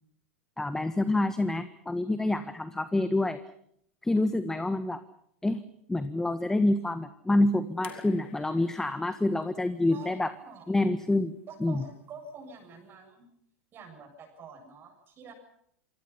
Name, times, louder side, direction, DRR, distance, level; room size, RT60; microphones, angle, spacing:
voice 1, 0.6-3.4 4.0-5.0 5.4-5.6 5.9-10.3 10.7-11.8, left 2 dB, 5° left, 12 dB, 1.5 m, -27 dB
sound 1, 7.8-11.0 12.2-12.3, left 9 dB, 60° left, 3.7 m, -52 dB
voice 2, 9.9-10.6 11.5-13.3 13.7-15.3, right 4 dB, 30° right, 4 dB, 7.7 m, -47 dB
28.0 x 24.5 x 5.8 m, 0.71 s
figure-of-eight pair, 90°, 7 cm